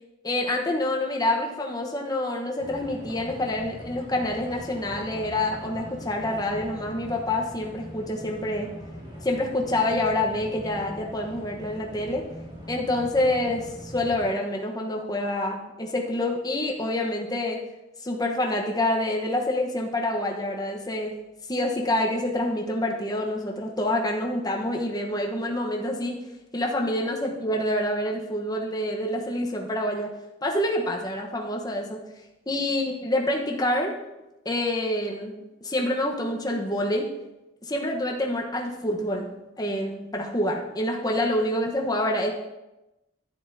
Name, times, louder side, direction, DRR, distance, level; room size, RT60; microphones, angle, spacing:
voice 1, 0.2-8.7 9.2-12.2 12.7-17.6 18.0-21.2 21.5-26.2 26.5-30.1 30.4-32.0 32.5-34.0 34.4-37.1 37.6-42.3, left 1 dB, 20° left, 0 dB, 1.0 m, -27 dB
sound 1, 2.6-14.3, equal, 25° right, 2.0 m, -41 dB
11.0 x 10.0 x 2.7 m, 0.98 s
head